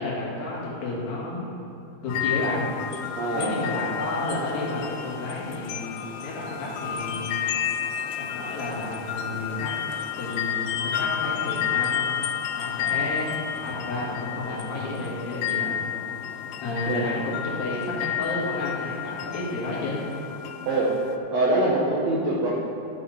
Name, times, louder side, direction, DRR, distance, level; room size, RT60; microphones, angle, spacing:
voice 1, 0.0-1.6 2.0-2.7 3.3-7.4 8.2-9.7 10.2-12.0 12.6-13.3 13.6-15.8 16.0-16.3 16.6-20.0, left 2 dB, 65° left, -5 dB, 3.3 m, -31 dB
sound 1, 2.1-21.2, left 9 dB, 80° left, 2.4 m, -31 dB
voice 2, 3.2-3.6 16.8-17.1 20.7-20.9 21.3-22.5, right 2 dB, 75° right, -4 dB, 1.5 m, -24 dB
13.0 x 7.0 x 3.8 m, 2.7 s
omnidirectional pair, 4.6 m